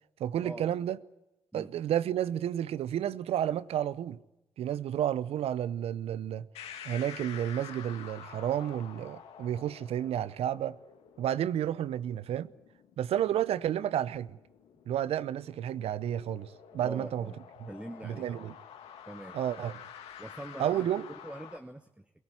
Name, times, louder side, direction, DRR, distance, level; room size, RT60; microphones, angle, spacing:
voice 1, 0.2-1.0 1.5-4.2 4.6-6.5 6.8-10.8 11.2-12.5 13.0-14.4 14.9-17.3 17.6-17.7 18.0-18.5 19.3-19.8 20.6-21.0, right 10 dB, 75° right, 0.7 m, -31 dB
sound 1, 6.5-21.6, left 8 dB, 80° left, 2.2 m, -49 dB
voice 2, 16.8-18.5 19.1-19.4 20.2-20.9 21.2-22.1, right 1 dB, 10° right, 1.4 m, -44 dB
22.5 x 17.0 x 9.9 m
hypercardioid pair, 40°, 10 cm